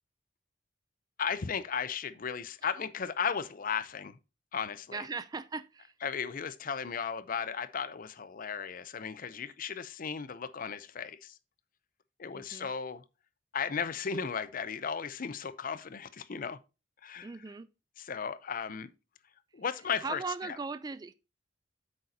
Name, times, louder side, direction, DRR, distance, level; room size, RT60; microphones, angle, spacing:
voice 1, 1.2-4.2 4.5-5.0 6.0-11.3 12.2-13.0 13.5-16.6 17.0-17.3 18.0-18.9 19.5-20.6, left 6 dB, 45° left, 0.5 m, -35 dB
voice 2, 4.9-5.9 12.3-12.7 17.2-17.7 20.0-21.1, right 4 dB, 20° right, 0.3 m, -38 dB
8.5 x 6.5 x 2.7 m
head